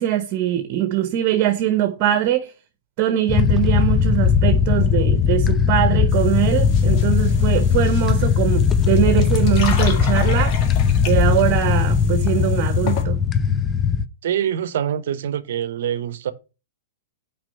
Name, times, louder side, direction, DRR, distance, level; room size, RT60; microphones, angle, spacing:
voice 1, 0.0-2.5 3.0-10.6 11.0-13.2, right 12 dB, 45° right, 1.0 m, -22 dB
sound 1, 3.3-14.1, left 7 dB, 20° left, 0.6 m, -18 dB
sound 2, 6.1-13.0, left 6 dB, 45° left, 2.0 m, -34 dB
voice 2, 14.2-16.3, right 9 dB, 70° right, 0.8 m, -25 dB
6.1 x 5.0 x 6.6 m
hypercardioid pair, 120°, 0 cm